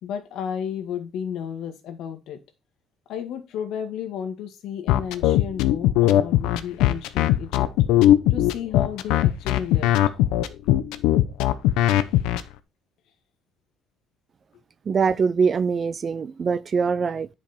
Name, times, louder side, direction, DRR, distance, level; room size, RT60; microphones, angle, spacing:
voice 1, 0.0-2.4 3.1-7.7 8.3-9.9, left 8 dB, 55° left, 1.8 m, -33 dB
sound 1, 4.9-12.4, left 13 dB, 85° left, 0.8 m, -19 dB
voice 2, 14.9-17.3, right 5 dB, 25° right, 0.4 m, -23 dB
10.5 x 5.2 x 4.3 m
cardioid pair, 170°, 0 cm